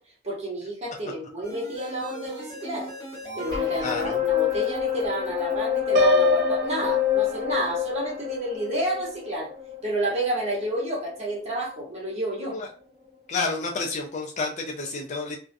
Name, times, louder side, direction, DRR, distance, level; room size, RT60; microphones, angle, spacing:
voice 1, 0.2-2.9 3.4-9.5 9.8-12.6, right 1 dB, 35° right, -4 dB, 1.0 m, -30 dB
sound 1, 1.4-11.8 12.2-12.3, left 11 dB, 20° left, 1.1 m, -28 dB
voice 2, 3.8-4.2 12.5-12.7 13.3-15.4, left 3 dB, 40° left, 1 dB, 0.4 m, -30 dB
Piano, 6.0-7.9, right 1 dB, 55° right, 0.3 m, -25 dB
2.4 x 2.1 x 2.6 m, 0.41 s
head